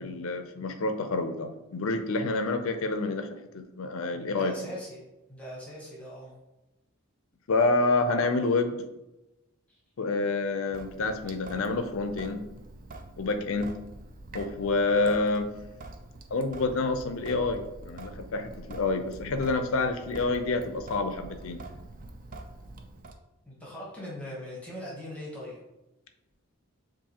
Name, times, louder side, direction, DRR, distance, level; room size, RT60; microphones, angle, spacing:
voice 1, 0.0-3.3 3.5-4.5 7.5-8.9 10.0-12.4 13.2-13.7 14.3-15.5 16.3-21.6, left 3 dB, 60° left, 7 dB, 0.5 m, -28 dB
voice 2, 4.1-5.0 5.3-6.3 8.2-8.3 9.7-9.8 23.5-25.6, left 1 dB, 5° left, -5 dB, 1.0 m, -41 dB
Sink (filling or washing) / Drip, 10.7-23.2, right 2 dB, 35° right, 0.4 m, -45 dB
7.1 x 2.6 x 2.8 m, 0.96 s
head